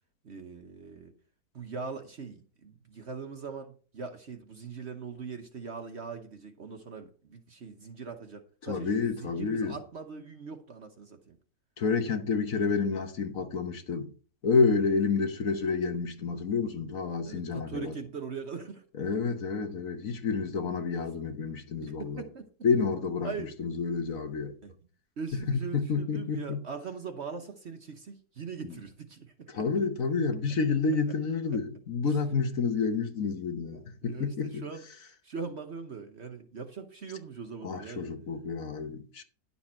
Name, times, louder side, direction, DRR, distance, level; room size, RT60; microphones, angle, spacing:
voice 1, 0.2-1.1 1.5-11.4 17.2-18.8 21.8-22.5 23.2-23.5 24.6-24.7 25.2-29.7 33.6-34.9 35.2-38.1, right 5 dB, 45° right, 1.0 m, -41 dB
voice 2, 8.6-9.8 11.8-14.1 14.4-18.0 19.0-22.2 22.6-23.3 23.6-24.6 25.5-26.6 28.6-28.7 29.5-34.7 37.6-39.2, left 5 dB, 55° left, 1.4 m, -29 dB
11.5 x 7.0 x 4.3 m
omnidirectional pair, 1.8 m